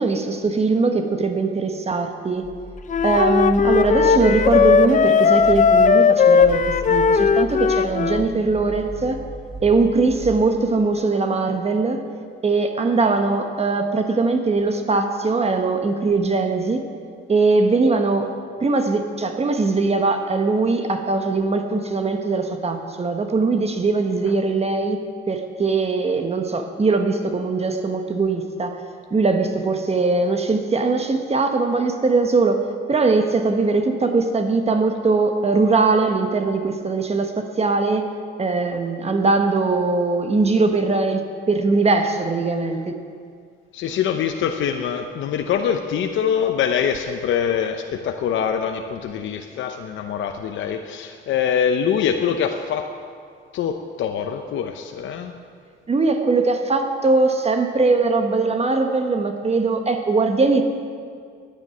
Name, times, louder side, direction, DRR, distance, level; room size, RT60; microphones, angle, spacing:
voice 1, 0.0-2.5 3.0-9.2 9.6-12.0 12.4-16.8 17.3-18.3 18.6-25.0 25.3-28.8 29.1-38.1 38.4-43.0 55.9-60.6, right 3 dB, 30° right, 5 dB, 1.2 m, -21 dB
sound 1, 2.4-5.0 5.4-5.9 6.3-10.6, left 1 dB, 5° right, 2.5 m, -34 dB
Wind instrument woodwind instrument, 2.9-8.3, left 6 dB, 40° left, 0.6 m, -17 dB
voice 2, 43.7-52.9 53.5-55.3, left 8 dB, 75° left, 5 dB, 0.8 m, -24 dB
10.0 x 9.1 x 9.7 m, 2.2 s
cardioid pair, 90°, 20 cm